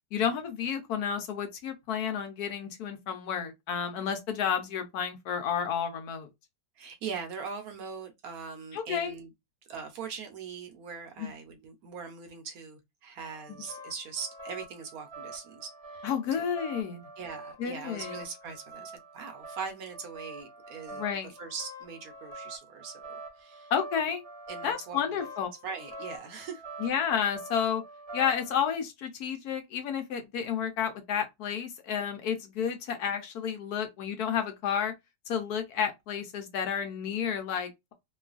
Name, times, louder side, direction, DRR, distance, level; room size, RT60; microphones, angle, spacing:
voice 1, 0.1-6.3 8.7-9.1 11.2-11.3 16.0-17.0 17.6-18.2 20.9-21.3 23.7-24.2 24.6-25.5 26.8-27.8 28.1-34.9 35.3-37.9, left 8 dB, 70° left, 1.1 m, -31 dB
voice 2, 6.8-9.3 9.7-16.5 17.2-21.0 21.4-23.7 24.5-25.2 25.6-26.6, right 6 dB, 65° right, 1.1 m, -41 dB
sound 1, 13.2-28.6, right 1 dB, 20° right, 0.9 m, -45 dB
3.0 x 2.3 x 2.4 m
omnidirectional pair, 1.8 m